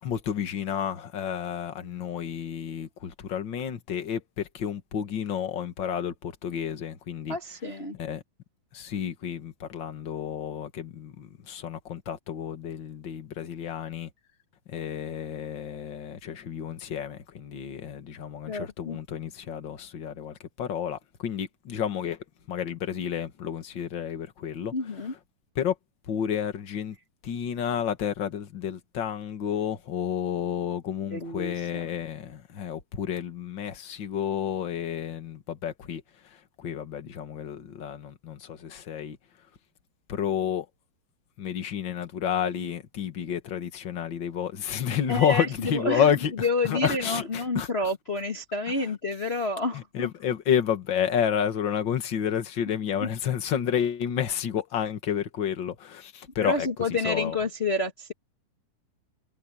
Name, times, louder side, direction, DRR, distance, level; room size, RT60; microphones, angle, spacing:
voice 1, 0.0-7.4 7.9-8.2 8.7-14.1 14.7-22.2 22.5-24.7 25.5-25.7 26.1-27.0 27.2-39.2 40.1-40.7 41.4-46.3 46.6-47.7 48.8-48.9 49.7-56.7 57.0-57.4, left 8 dB, 45° left, 1.6 m, -30 dB
voice 2, 7.3-8.0 18.5-19.0 24.7-25.1 31.1-31.8 45.1-46.0 46.4-50.1 56.4-58.1, left 2 dB, 80° left, 0.5 m, -29 dB
omnidirectional pair, 4.3 m